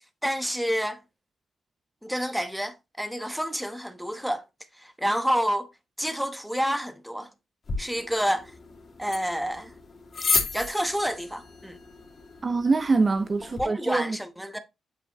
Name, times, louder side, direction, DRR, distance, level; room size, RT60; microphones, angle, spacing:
voice 1, 0.2-1.0 2.0-4.4 4.8-5.7 6.0-7.3 7.8-8.5 9.0-9.7 10.5-11.8 13.6-14.6, equal, ahead, 1.0 m, -28 dB
sound 1, 7.6-13.7, left 4 dB, 45° left, 2.3 m, -33 dB
voice 2, 12.4-14.2, right 3 dB, 35° right, 0.5 m, -24 dB
8.2 x 5.0 x 3.0 m
cardioid pair, 85°, 0 cm